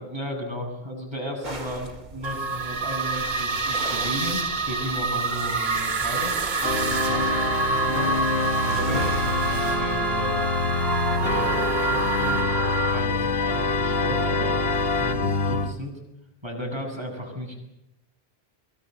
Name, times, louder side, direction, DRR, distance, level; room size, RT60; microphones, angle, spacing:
voice 1, 0.0-10.4 11.1-14.6 15.0-16.0 16.4-17.5, equal, 25° right, 1 dB, 8.0 m, -35 dB
sound 1, 1.4-10.0, right 1 dB, 45° right, 3.3 m, -40 dB
sound 2, 2.2-13.0, right 4 dB, 85° right, 1.6 m, -28 dB
Organ, 6.6-15.7, left 3 dB, 75° left, 1.9 m, -25 dB
24.0 x 23.0 x 8.0 m, 0.85 s
omnidirectional pair, 1.0 m